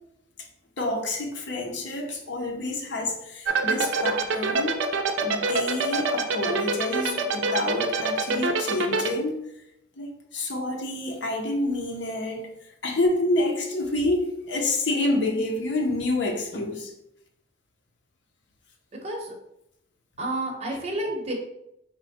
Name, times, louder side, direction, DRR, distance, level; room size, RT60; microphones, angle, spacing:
voice 1, 0.8-4.8 5.2-9.4 10.0-16.9 20.7-20.8, left 2 dB, 70° left, 2 dB, 0.7 m, -28 dB
sound 1, 3.5-9.1, right 4 dB, 70° right, 0.5 m, -24 dB
voice 2, 19.0-19.3 20.2-21.3, right 1 dB, 35° right, -1 dB, 0.9 m, -30 dB
4.6 x 2.1 x 4.1 m, 0.81 s
head